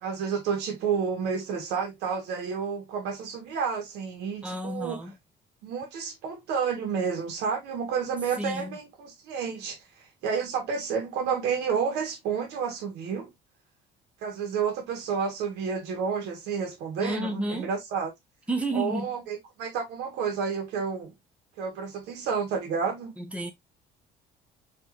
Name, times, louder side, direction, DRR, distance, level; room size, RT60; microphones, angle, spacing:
voice 1, 0.0-5.0 5.6-9.8 10.2-13.3 14.2-18.1 18.7-21.1 21.6-23.1, right 6 dB, 80° right, 2.1 m, -30 dB
voice 2, 4.4-5.1 8.4-8.8 17.0-17.7 18.5-19.2 23.2-23.5, right 1 dB, 5° right, 1.2 m, -31 dB
4.7 x 3.5 x 2.8 m
cardioid pair, 100°, 17 cm